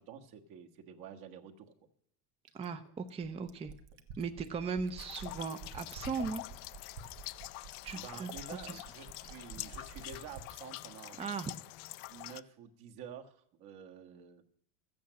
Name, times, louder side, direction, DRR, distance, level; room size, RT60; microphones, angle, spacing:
voice 1, 0.0-1.7 7.9-11.2 12.1-14.4, right 7 dB, 60° right, 4 dB, 1.6 m, -49 dB
Fill (with liquid), 2.5-10.6 11.9-12.0, right 5 dB, 80° right, 1.6 m, -49 dB
voice 2, 2.6-3.7 4.2-6.4 7.8-8.3 8.7-8.8 11.2-11.5, right 5 dB, 15° right, 9 dB, 0.5 m, -38 dB
sound 1, 5.0-12.4, left 20 dB, 85° left, 0.6 m, -46 dB
14.0 x 8.6 x 7.5 m, 0.70 s
cardioid pair, 145°, 41 cm